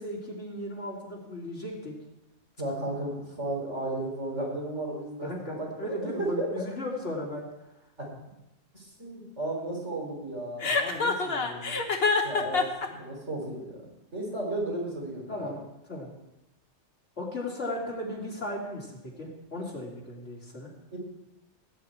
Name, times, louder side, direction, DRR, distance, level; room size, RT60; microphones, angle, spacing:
voice 1, 0.0-1.9 5.2-7.5 10.6-11.8 15.3-15.6 15.9-16.1 17.2-20.7, left 1 dB, 80° left, -3 dB, 3.5 m, -36 dB
voice 2, 2.6-6.6 8.0-8.1 8.7-10.7 12.2-13.8 14.1-15.5 20.9-21.0, right 1 dB, 90° right, -2 dB, 4.6 m, -34 dB
Chuckle chortle, 10.6-12.9, left 4 dB, 60° left, 1.4 m, -26 dB
18.0 x 9.1 x 4.6 m, 0.92 s
omnidirectional pair, 1.2 m